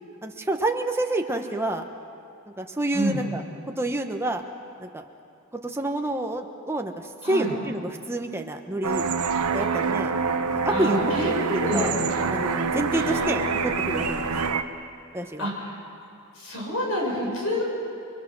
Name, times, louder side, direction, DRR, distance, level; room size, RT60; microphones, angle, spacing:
voice 1, 0.2-1.9 2.6-3.4 3.8-4.4 4.8-5.0 5.6-9.0 9.5-10.1 10.5-11.9 12.3-14.6 15.1-15.5, right 1 dB, 10° right, 4 dB, 1.1 m, -28 dB
sound 1, 8.8-14.6, right 4 dB, 85° right, 1.0 m, -26 dB
voice 2, 10.7-11.3 11.6-11.9 12.9-13.5 15.4-15.6 16.3-17.6, equal, 70° left, -2 dB, 6.5 m, -28 dB
29.0 x 22.0 x 6.2 m, 2.6 s
head